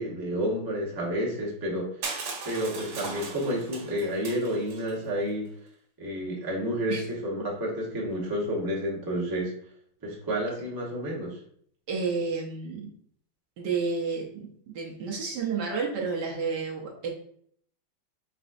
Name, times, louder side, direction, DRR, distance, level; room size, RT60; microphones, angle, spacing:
voice 1, 0.0-1.9 2.4-5.5 6.0-9.5 10.0-11.4, equal, 15° right, -4 dB, 0.7 m, -30 dB
Crushing, 2.0-5.0, right 4 dB, 80° right, 1.8 m, -38 dB
voice 2, 11.9-12.9 13.6-17.1, right 4 dB, 65° right, -1 dB, 1.3 m, -31 dB
5.1 x 3.6 x 2.5 m, 0.62 s
omnidirectional pair, 2.1 m